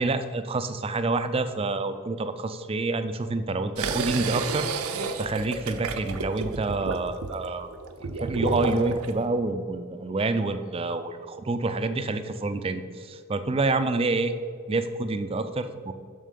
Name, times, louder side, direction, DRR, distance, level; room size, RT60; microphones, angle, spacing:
voice 1, 0.0-7.7 8.1-14.3 14.7-15.9, right 3 dB, 25° right, 10 dB, 0.3 m, -28 dB
sound 1, 3.8-9.1, right 4 dB, 75° right, 0.6 m, -31 dB
7.4 x 6.5 x 5.2 m, 2.2 s
head